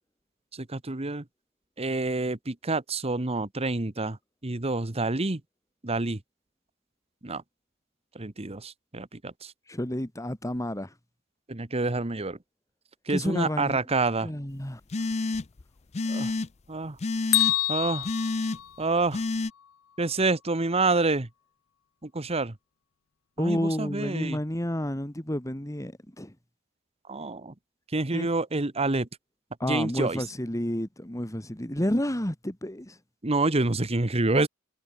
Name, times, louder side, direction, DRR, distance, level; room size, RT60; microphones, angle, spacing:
voice 1, 0.5-1.2 1.8-4.2 4.4-5.4 5.8-6.2 7.2-7.4 8.1-9.5 11.5-12.4 13.1-14.3 16.1-16.3 16.7-17.0 17.7-18.1 18.8-19.2 20.0-21.3 22.0-22.5 23.4-24.4 27.1-27.5 27.9-29.1 29.6-30.2 33.2-34.5, right 3 dB, 30° right, 1.2 m, -27 dB
voice 2, 9.7-10.9 13.1-13.8 14.2-14.8 23.4-26.3 28.1-28.3 29.6-33.0, left 1 dB, 15° left, 2.1 m, -30 dB
sound 1, 14.9-15.6 15.9-16.5 17.0-17.5 18.0-18.6 19.1-19.5, left 3 dB, 30° left, 0.5 m, -29 dB
Bell, 17.3-19.4, left 18 dB, 90° left, 0.7 m, -27 dB
head